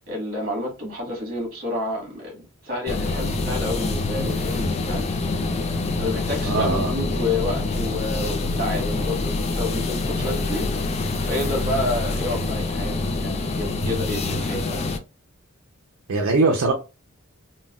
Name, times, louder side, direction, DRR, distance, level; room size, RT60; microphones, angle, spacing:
voice 1, 0.0-5.1 6.0-10.7 11.2-14.9, left 2 dB, 45° right, 1.6 m, -29 dB
sound 1, 2.9-15.0, left 3 dB, 30° left, 0.3 m, -26 dB
voice 2, 6.4-6.9 16.1-16.7, right 3 dB, 70° right, 0.5 m, -21 dB
3.7 x 2.1 x 2.2 m
head